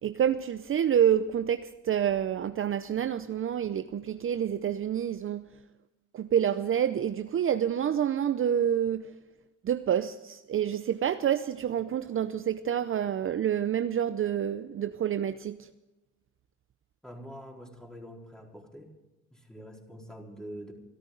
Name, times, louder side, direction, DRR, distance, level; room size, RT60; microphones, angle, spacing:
voice 1, 0.0-5.5 6.1-9.1 9.6-15.7, right 9 dB, 45° right, 0.6 m, -28 dB
voice 2, 17.0-18.9 19.3-20.7, equal, ahead, 4.3 m, -45 dB
25.0 x 13.0 x 3.9 m
cardioid pair, 90°, 30 cm